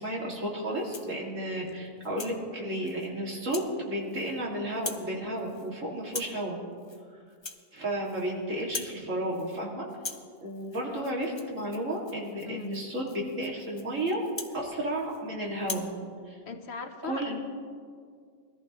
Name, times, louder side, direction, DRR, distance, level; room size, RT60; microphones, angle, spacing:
voice 1, 0.0-6.6 7.7-9.8 10.4-14.2 14.5-15.9 16.3-16.4 17.0-17.3, right 1 dB, 75° right, -3 dB, 2.8 m, -32 dB
Rattle (instrument), 0.7-1.2 1.7-2.4 2.9-3.1 3.5-3.7 4.0-4.4 4.7-5.1 5.4-5.7 6.1-6.4 6.8-7.0 7.3-8.3 8.6-9.0 9.3-9.6 9.9-15.2 15.6-15.9, left 4 dB, 25° left, 0.6 m, -42 dB
voice 2, 16.5-17.4, left 6 dB, 60° left, 6 dB, 1.1 m, -39 dB
21.5 x 14.0 x 3.1 m, 2.1 s
omnidirectional pair, 1.3 m